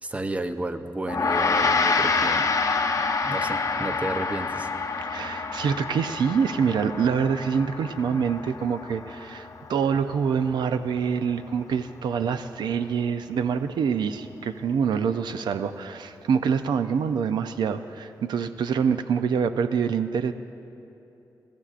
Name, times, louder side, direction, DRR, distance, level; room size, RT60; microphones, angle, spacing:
voice 1, 0.0-2.5 3.2-4.7, right 2 dB, 20° right, 8 dB, 0.6 m, -32 dB
Gong, 1.1-10.6, left 4 dB, 50° left, 0.8 m, -27 dB
voice 2, 5.1-20.3, right 6 dB, 90° right, 10 dB, 0.4 m, -25 dB
24.5 x 15.5 x 2.5 m, 2.8 s
cardioid pair, 85°, 7 cm